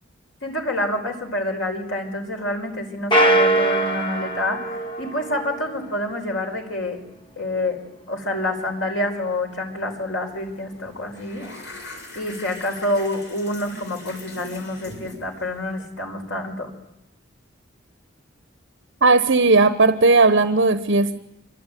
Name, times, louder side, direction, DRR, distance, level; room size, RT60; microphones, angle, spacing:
voice 1, 0.4-7.0 7.4-7.8 8.1-11.5 12.1-16.7, left 1 dB, 85° left, 4 dB, 5.2 m, -27 dB
sound 1, 3.1-5.8, right 1 dB, 25° left, 2.6 m, -21 dB
sound 2, 10.3-10.5 10.8-15.8, left 2 dB, 65° left, 6.3 m, -41 dB
voice 2, 19.0-21.2, right 3 dB, 70° right, 10 dB, 1.1 m, -16 dB
25.5 x 25.0 x 9.3 m, 0.86 s
head